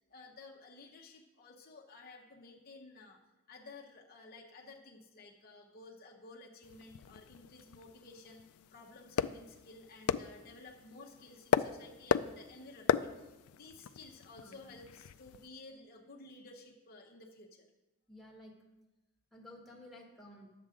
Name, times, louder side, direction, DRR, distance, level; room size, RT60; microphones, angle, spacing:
voice 1, 0.1-3.2 3.5-13.3 13.5-17.6, left 3 dB, 45° left, 0 dB, 0.8 m, -54 dB
sound 1, 6.6-15.5, left 8 dB, 90° left, 0.3 m, -37 dB
voice 2, 14.3-14.8 18.1-18.6 19.3-20.5, left 1 dB, ahead, -3 dB, 1.3 m, -54 dB
11.0 x 7.4 x 3.7 m, 1.0 s
head